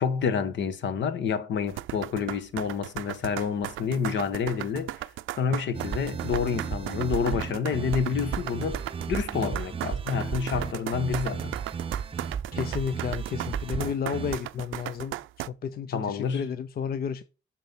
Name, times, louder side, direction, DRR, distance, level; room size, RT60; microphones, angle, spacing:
voice 1, 0.0-4.9 5.4-11.6 15.9-16.4, left 6 dB, 70° left, 1.2 m, -28 dB
sound 1, 1.7-15.5, right 15 dB, 80° right, 0.5 m, -36 dB
sound 2, 5.7-14.4, right 7 dB, 30° right, 0.4 m, -34 dB
voice 2, 12.5-15.1 15.5-17.2, left 7 dB, 50° left, 0.6 m, -32 dB
9.0 x 4.5 x 5.9 m
cardioid pair, 90°, 20 cm